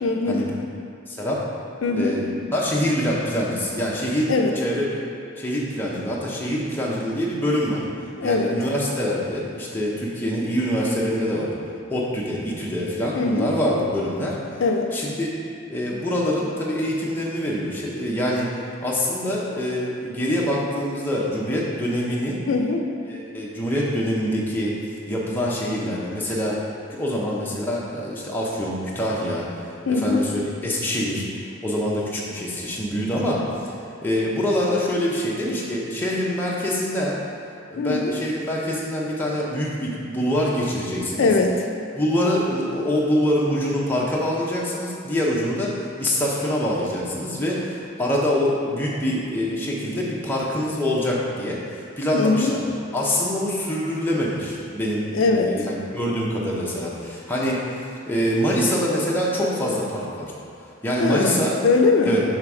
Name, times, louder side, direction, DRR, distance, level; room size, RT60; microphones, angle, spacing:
voice 1, 0.0-0.4 1.8-2.2 4.3-4.5 8.2-8.6 13.1-13.5 14.6-15.0 22.5-22.9 29.9-30.2 37.8-38.1 41.2-41.6 52.1-52.6 55.1-55.6 61.0-62.2, left 3 dB, 70° left, 3 dB, 0.4 m, -21 dB
voice 2, 1.1-1.4 1.9-4.3 4.6-5.0 5.4-7.8 8.2-11.5 11.9-14.4 14.9-15.3 15.7-18.5 18.8-22.4 23.1-24.7 25.1-26.6 26.9-29.5 29.9-31.2 31.6-33.7 34.0-37.2 37.7-41.3 41.9-52.6 52.9-57.7 58.1-60.3 60.8-61.5 62.0-62.2, equal, 10° left, -5 dB, 0.7 m, -25 dB
5.7 x 3.4 x 4.8 m, 2.5 s
head